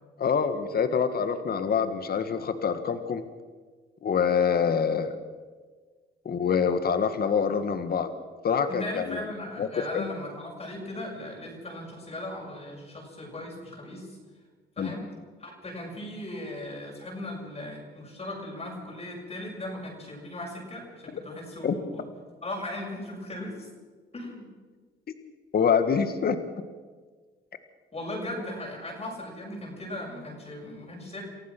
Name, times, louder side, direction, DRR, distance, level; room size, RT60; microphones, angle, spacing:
voice 1, 0.2-3.2 4.0-5.1 6.2-8.1 8.4-9.2 9.6-10.1 14.8-14.9 21.6-21.8 25.5-26.4, left 6 dB, 50° left, 10 dB, 1.7 m, -25 dB
voice 2, 8.7-14.2 14.8-15.0 15.4-22.1 22.4-23.7 24.1-24.5 27.9-31.2, left 1 dB, 30° left, -2 dB, 7.2 m, -38 dB
28.5 x 15.0 x 6.1 m, 1.4 s
cardioid pair, 90°, 20 cm